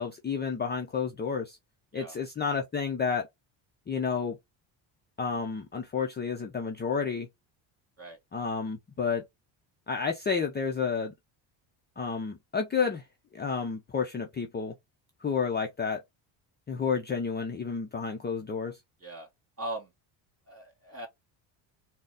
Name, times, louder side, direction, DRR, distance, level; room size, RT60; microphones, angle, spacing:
voice 1, 0.0-1.6 1.9-3.3 3.9-4.4 5.2-7.3 8.3-9.2 9.9-11.1 12.0-13.0 13.3-14.7 15.2-16.0 16.7-18.8, left 5 dB, 20° left, 0.5 m, -30 dB
voice 2, 19.6-19.9 20.5-21.1, right 1 dB, 30° right, 2.2 m, -39 dB
3.9 x 2.1 x 3.5 m
cardioid pair, 105°, 48 cm